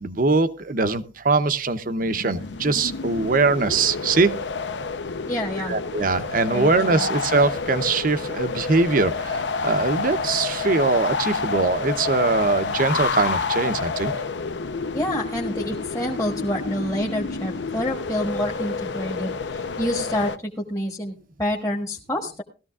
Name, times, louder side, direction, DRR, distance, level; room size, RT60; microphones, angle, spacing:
voice 1, 0.0-4.4 5.7-14.1, right 3 dB, 45° right, 12 dB, 0.7 m, -22 dB
sound 1, 2.0-20.4, left 4 dB, 70° left, 0.7 m, -29 dB
voice 2, 5.3-6.1 6.5-7.1 14.9-20.3 20.7-22.4, equal, 15° left, -1 dB, 1.3 m, -28 dB
18.5 x 14.0 x 2.4 m, 0.33 s
head